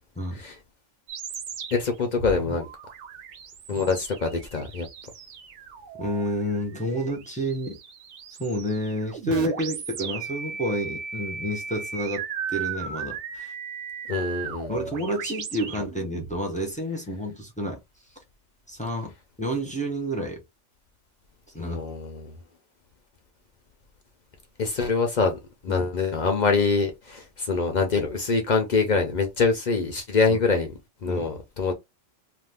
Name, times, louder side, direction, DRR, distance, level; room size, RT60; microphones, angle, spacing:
sound 1, 1.1-16.4, right 6 dB, 70° right, 1.0 m, -37 dB
voice 1, 1.7-2.7 3.7-4.9 14.1-14.8 21.6-22.4 24.6-31.7, left 4 dB, 50° left, 0.5 m, -25 dB
voice 2, 6.0-7.8 8.4-13.5 14.7-17.8 18.7-19.1 19.4-20.4 21.5-21.8 25.7-25.9 30.3-30.4 31.1-31.3, equal, 10° left, 0.6 m, -29 dB
2.5 x 2.4 x 3.4 m
omnidirectional pair, 1.3 m